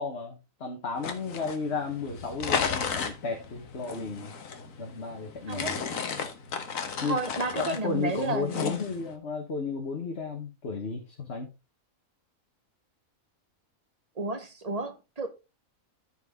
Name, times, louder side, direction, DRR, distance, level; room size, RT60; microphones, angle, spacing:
voice 1, 0.0-4.3 4.8-5.8 7.0-7.2 7.5-11.5, left 4 dB, 50° left, 1.5 m, -33 dB
sound 1, 1.0-9.1, left 6 dB, 70° left, 1.6 m, -34 dB
voice 2, 5.5-5.8 7.0-8.8 14.2-15.3, right 3 dB, 30° right, 1.3 m, -32 dB
13.5 x 4.7 x 3.6 m
omnidirectional pair, 1.5 m